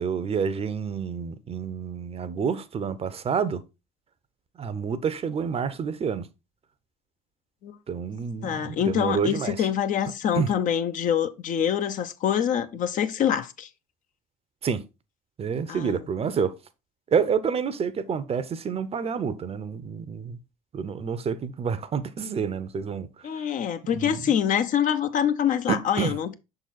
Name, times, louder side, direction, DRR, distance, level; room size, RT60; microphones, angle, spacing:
voice 1, 0.0-3.6 4.6-6.2 7.9-9.5 10.4-10.5 14.6-14.8 15.4-16.5 17.1-20.4 20.7-23.1 23.9-24.2 25.7-26.2, right 6 dB, 35° right, 0.7 m, -28 dB
voice 2, 8.4-13.7 15.7-16.0 23.2-26.3, left 9 dB, 50° left, 0.7 m, -25 dB
6.1 x 4.0 x 4.1 m
hypercardioid pair, 60°, 18 cm